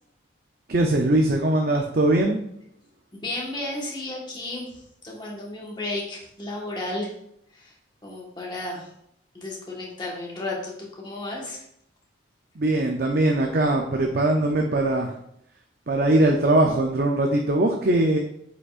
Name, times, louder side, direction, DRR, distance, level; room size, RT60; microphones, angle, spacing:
voice 1, 0.7-2.4 12.6-15.1 15.9-18.2, right 1 dB, 50° right, 2 dB, 0.6 m, -21 dB
voice 2, 3.1-7.1 7.5-7.7 8.0-8.9 9.3-11.6, left 2 dB, 25° left, -3 dB, 1.4 m, -33 dB
8.2 x 5.2 x 2.5 m, 0.75 s
head